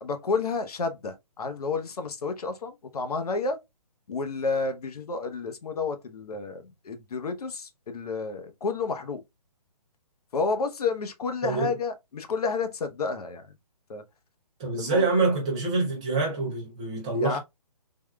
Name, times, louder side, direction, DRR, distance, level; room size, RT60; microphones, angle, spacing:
voice 1, 0.0-3.6 4.1-9.2 10.3-13.5 13.9-14.0 14.7-15.1 17.2-17.4, left 4 dB, 65° left, 0.7 m, -30 dB
voice 2, 11.4-11.7 14.6-17.4, right 3 dB, 10° right, 0.4 m, -26 dB
3.5 x 2.3 x 2.2 m
hypercardioid pair, 170°, 21 cm